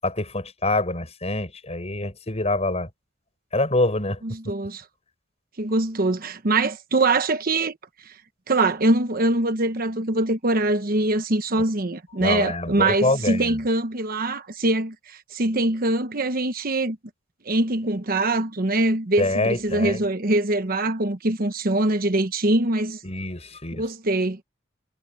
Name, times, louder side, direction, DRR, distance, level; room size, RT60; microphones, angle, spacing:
voice 1, 0.0-2.9 3.5-4.2 12.2-13.6 19.2-20.0 23.0-23.8, left 2 dB, 35° left, 7.2 m, -25 dB
voice 2, 4.2-4.8 5.6-7.8 8.0-8.1 8.5-17.0 17.4-23.0 23.7-24.4, right 2 dB, 50° right, 1.1 m, -23 dB
head